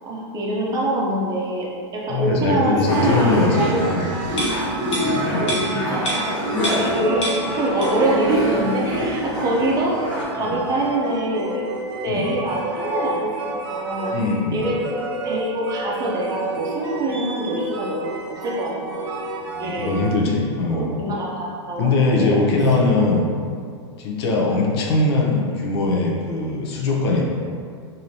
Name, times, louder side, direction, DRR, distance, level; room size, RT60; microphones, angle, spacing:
voice 1, 0.0-1.7 1.9-3.8 5.3-6.4 6.8-7.3 7.6-11.6 12.0-14.1 14.5-14.8 15.2-19.2 19.6-19.9 20.7-22.4 23.0-23.1, right 2 dB, 25° right, -4 dB, 0.6 m, -25 dB
voice 2, 2.1-4.1 5.2-5.5 10.4-10.6 12.1-12.3 14.1-14.6 19.5-20.9 21.8-23.2 24.0-27.2, left 3 dB, 65° left, -1 dB, 0.6 m, -21 dB
sound 1, 2.5-20.2, right 2 dB, 70° right, 0.5 m, -31 dB
sound 2, 2.9-10.2, left 1 dB, 30° left, 1.0 m, -26 dB
sound 3, 4.4-7.0 7.2-8.2 8.5-8.6, right 1 dB, 85° left, 1.0 m, -28 dB
3.0 x 2.7 x 2.7 m, 2.2 s
hypercardioid pair, 120°, 15 cm